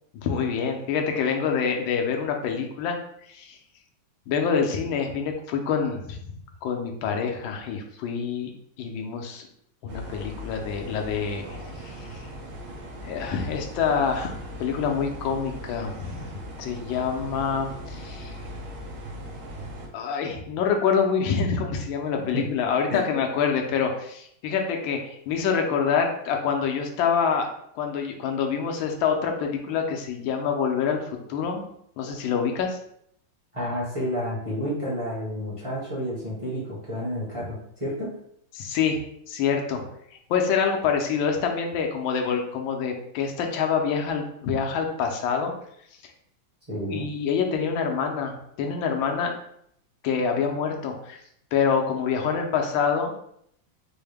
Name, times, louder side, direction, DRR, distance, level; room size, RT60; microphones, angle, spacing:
voice 1, 0.1-3.6 4.3-6.3 6.6-8.5 8.8-9.5 9.8-12.3 13.0-18.4 19.9-27.5 27.7-31.7 32.0-32.8 38.5-39.0 39.3-39.8 40.3-45.5 46.0-46.1 46.9-49.3 50.0-51.2 51.5-53.1, left 6 dB, 75° left, 3 dB, 1.3 m, -26 dB
sound 1, 9.9-19.9, equal, 80° right, 1.7 m, -39 dB
voice 2, 22.1-22.4 22.9-23.0 33.5-38.1 46.7-47.1, equal, 25° right, -7 dB, 0.8 m, -30 dB
4.6 x 2.1 x 3.4 m, 0.71 s
omnidirectional pair, 2.3 m